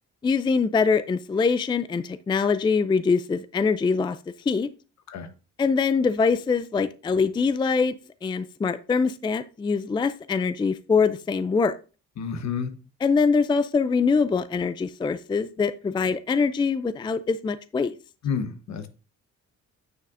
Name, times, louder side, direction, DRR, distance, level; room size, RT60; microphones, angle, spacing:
voice 1, 0.2-4.2 4.5-4.7 5.6-11.8 13.0-17.9, left 5 dB, 15° left, 0.3 m, -23 dB
voice 2, 12.2-12.7 18.2-18.9, left 6 dB, 65° left, 1.1 m, -29 dB
9.3 x 6.7 x 2.5 m
cardioid pair, 90°, 30 cm